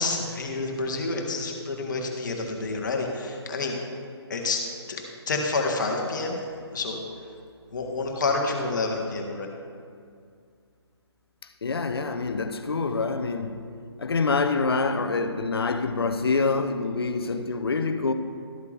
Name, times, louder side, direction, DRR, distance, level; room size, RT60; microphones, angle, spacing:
voice 1, 0.0-3.8 4.3-4.6 4.9-5.0 5.3-6.4 6.7-7.0 7.7-9.5, left 3 dB, 45° left, 1.5 m, -28 dB
voice 2, 11.6-13.7 14.0-18.1, left 4 dB, 60° left, 0.8 m, -26 dB
13.0 x 8.2 x 3.4 m
figure-of-eight pair, 145°, 14 cm